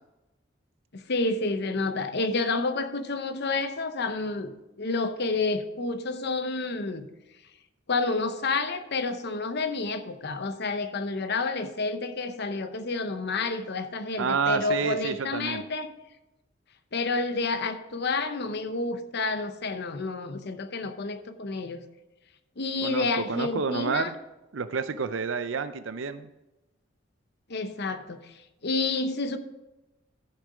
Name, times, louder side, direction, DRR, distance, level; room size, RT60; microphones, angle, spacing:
voice 1, 0.9-7.1 7.9-15.9 16.9-21.8 22.6-24.1 27.5-28.3 28.6-29.4, left 3 dB, 60° left, 9 dB, 0.8 m, -29 dB
voice 2, 14.2-15.6 22.8-24.1 24.5-26.3, right 5 dB, 70° right, 11 dB, 0.6 m, -29 dB
13.5 x 6.6 x 5.1 m, 0.99 s
head